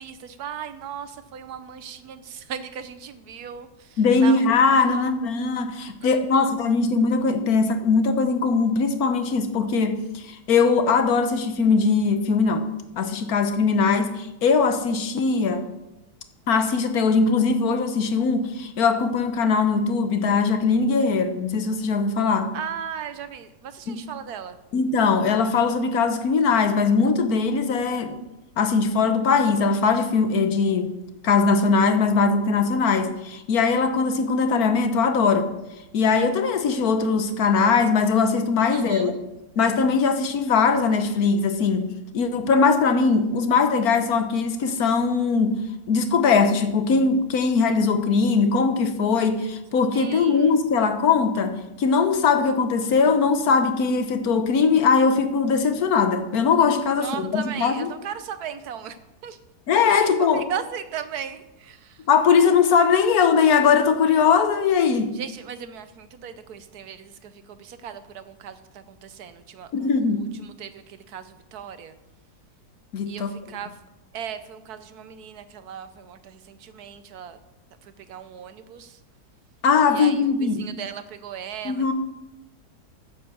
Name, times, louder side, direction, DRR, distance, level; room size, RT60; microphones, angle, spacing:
voice 1, 0.0-4.4 4.9-5.1 6.2-6.6 22.5-24.6 38.7-39.1 49.9-50.5 57.0-59.0 59.2-59.4 59.9-62.0 65.2-71.9 73.1-73.7 74.1-77.4 78.1-79.0 79.9-80.3 80.6-81.9, right 8 dB, 70° right, 11 dB, 1.2 m, -37 dB
voice 2, 4.0-12.7 13.0-15.7 16.5-22.5 23.9-24.0 24.7-28.2 28.6-30.9 31.2-35.5 35.9-39.2 39.6-45.5 45.9-57.9 59.7-60.5 62.1-65.2 69.7-70.3 72.9-73.3 79.6-80.7 81.6-81.9, left 5 dB, 60° left, 8 dB, 1.4 m, -20 dB
9.2 x 7.8 x 7.1 m, 0.94 s
omnidirectional pair, 1.8 m